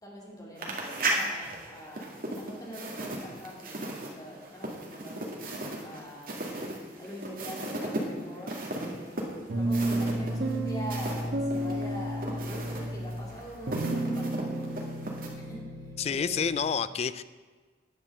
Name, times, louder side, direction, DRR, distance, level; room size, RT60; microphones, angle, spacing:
voice 1, 0.0-5.4 5.8-6.5 7.0-16.5, equal, 20° left, -3 dB, 2.5 m, -44 dB
sound 1, 0.6-11.2 11.5-15.3, right 2 dB, 55° right, 2.0 m, -36 dB
sound 2, 9.5-16.6, right 1 dB, 85° right, 1.2 m, -32 dB
voice 2, 16.0-17.2, left 6 dB, 35° left, 15 dB, 0.3 m, -29 dB
10.0 x 6.2 x 7.7 m, 1.4 s
head